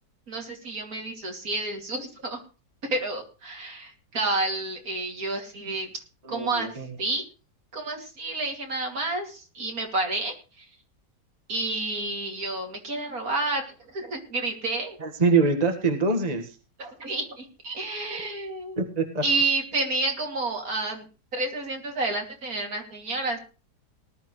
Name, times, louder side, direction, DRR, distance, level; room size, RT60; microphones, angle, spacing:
voice 1, 0.3-2.4 2.8-5.9 6.3-7.2 7.7-10.6 11.5-15.0 16.8-18.9 19.2-21.0 21.3-23.4, right 2 dB, 55° right, 2 dB, 3.2 m, -30 dB
voice 2, 6.2-6.9 15.0-16.5 18.8-19.2, right 4 dB, 25° right, 4 dB, 1.7 m, -24 dB
19.0 x 12.0 x 3.2 m, 0.33 s
omnidirectional pair, 1.8 m